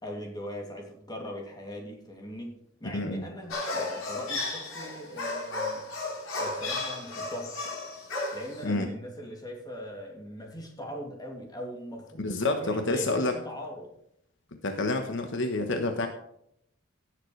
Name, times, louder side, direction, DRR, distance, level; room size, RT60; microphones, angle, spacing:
voice 1, 0.0-5.9 6.4-7.5 8.3-13.9, equal, 20° left, 0 dB, 2.6 m, -40 dB
voice 2, 2.9-3.3 8.6-8.9 12.2-13.4 14.6-16.1, left 2 dB, 65° left, 5 dB, 1.1 m, -28 dB
sound 1, 3.5-8.6, left 2 dB, 85° left, 3.9 m, -34 dB
17.0 x 7.4 x 3.3 m, 0.72 s
head